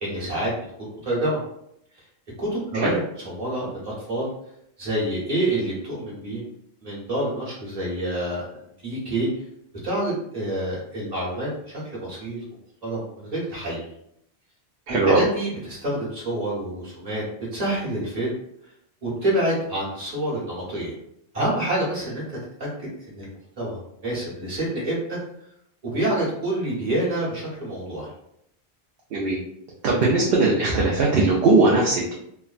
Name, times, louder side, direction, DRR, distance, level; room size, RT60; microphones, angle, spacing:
voice 1, 0.0-1.4 2.4-4.3 4.8-6.4 6.8-8.5 8.8-9.3 9.8-12.4 12.8-13.8 14.9-17.2 17.5-18.3 19.0-20.9 21.3-25.2 25.8-28.1, right 1 dB, 35° right, -7 dB, 1.2 m, -27 dB
voice 2, 14.9-15.2 29.1-29.4 29.8-32.1, right 3 dB, 65° right, -3 dB, 0.7 m, -19 dB
3.3 x 2.1 x 2.4 m, 0.75 s
omnidirectional pair, 1.1 m